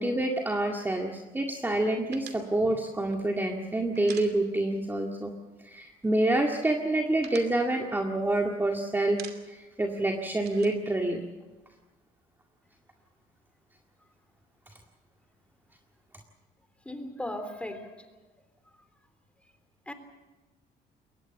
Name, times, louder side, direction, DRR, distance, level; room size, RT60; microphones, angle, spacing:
voice 1, 0.0-5.4 5.6-11.2, right 1 dB, 10° right, 1 dB, 2.0 m, -27 dB
domino stone on the table, 2.1-4.9 5.2-5.3 5.6-6.3 6.7-8.7 9.0-9.7 10.0-11.8, right 9 dB, 70° right, 2.6 m, -48 dB
voice 2, 16.8-18.0 19.9-20.0, left 1 dB, 5° left, 8 dB, 3.3 m, -37 dB
22.5 x 19.0 x 7.1 m, 1.2 s
cardioid pair, 110°, 17 cm